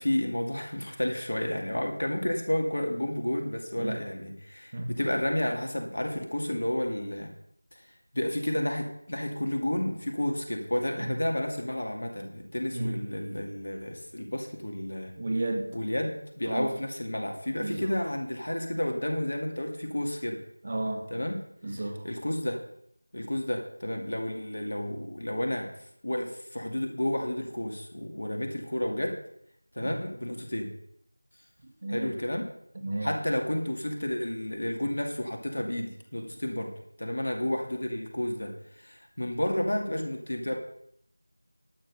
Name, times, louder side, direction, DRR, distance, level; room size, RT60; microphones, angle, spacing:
voice 1, 0.0-7.3 7.7-7.9 8.1-15.1 15.7-20.4 21.1-21.4 22.0-22.6 23.1-25.7 26.0-29.2 29.7-30.7 31.9-32.5 33.0-36.7 37.0-40.6, left 1 dB, 55° left, 3 dB, 2.4 m, -31 dB
voice 2, 15.2-15.7 16.4-16.7 17.6-17.9 20.6-21.1 21.6-22.1 29.8-29.9 31.8-32.1 32.8-33.1, right 2 dB, 35° right, 4 dB, 1.7 m, -32 dB
11.5 x 7.5 x 6.5 m, 0.71 s
figure-of-eight pair, 175°, 0 cm